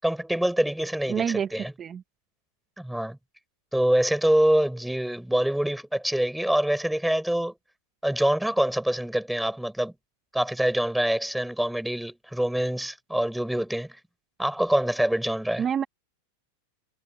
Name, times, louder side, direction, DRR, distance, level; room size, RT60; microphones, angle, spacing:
voice 1, 0.0-1.2 1.5-1.7 2.8-3.2 3.7-7.5 8.0-9.9 10.3-14.0 14.4-15.6, right 1 dB, ahead, 5.9 m, -25 dB
voice 2, 1.1-1.5 1.8-2.0 15.6-15.8, right 7 dB, 20° right, 1.4 m, -26 dB
supercardioid pair, 145°, 0 cm